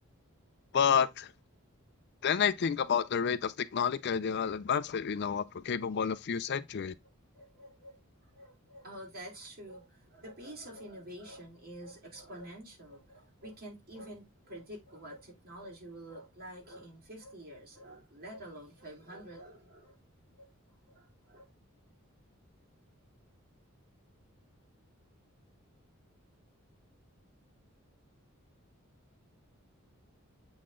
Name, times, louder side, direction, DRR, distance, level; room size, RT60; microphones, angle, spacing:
voice 1, 0.7-1.3 2.2-6.9, left 7 dB, 50° left, 0.4 m, -30 dB
voice 2, 7.3-8.0 8.3-20.0 20.3-20.5 20.8-21.5, right 1 dB, 45° right, 3.8 m, -48 dB
7.5 x 4.1 x 3.7 m
head